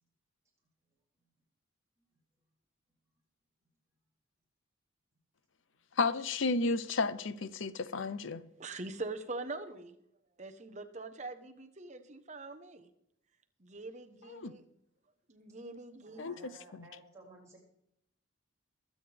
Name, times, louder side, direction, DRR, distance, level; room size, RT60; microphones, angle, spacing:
voice 1, 6.0-8.4 14.3-14.5 16.2-16.9, left 3 dB, 70° left, 0.7 m, -33 dB
voice 2, 8.6-10.0 10.4-12.9 13.6-14.7 15.3-16.4, right 3 dB, 35° right, 1.0 m, -43 dB
voice 3, 16.1-17.6, right 2 dB, 15° right, 5.8 m, -55 dB
23.0 x 8.7 x 3.5 m
head